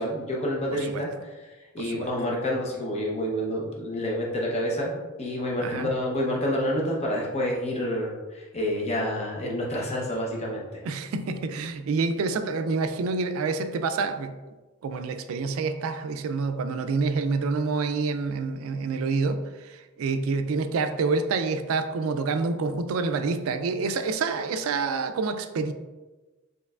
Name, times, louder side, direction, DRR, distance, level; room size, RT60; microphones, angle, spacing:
voice 1, 0.0-10.6, equal, 30° left, -3 dB, 0.7 m, -28 dB
voice 2, 1.8-2.1 5.6-5.9 10.8-14.3 14.8-25.7, right 4 dB, 70° right, 9 dB, 0.3 m, -27 dB
4.5 x 3.1 x 2.3 m, 1.2 s
head